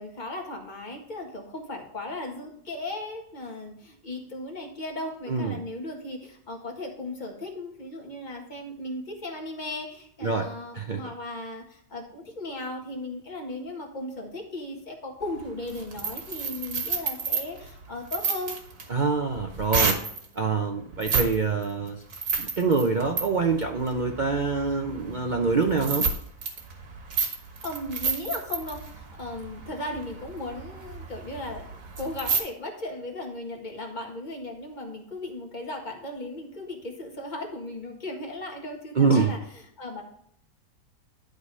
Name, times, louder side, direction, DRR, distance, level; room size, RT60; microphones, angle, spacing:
voice 1, 0.0-18.5 27.3-39.4 39.8-40.0, left 2 dB, 30° left, 0 dB, 1.7 m, -36 dB
voice 2, 5.3-5.6 10.2-10.5 10.8-11.0 18.9-20.0 20.4-22.0 22.4-26.1 39.0-39.3, right 4 dB, 80° right, 3 dB, 0.4 m, -25 dB
sound 1, 15.2-20.3 20.9-21.4 21.6-32.4, right 5 dB, 55° right, 1.6 m, -31 dB
11.0 x 3.9 x 5.4 m, 0.68 s
omnidirectional pair, 1.7 m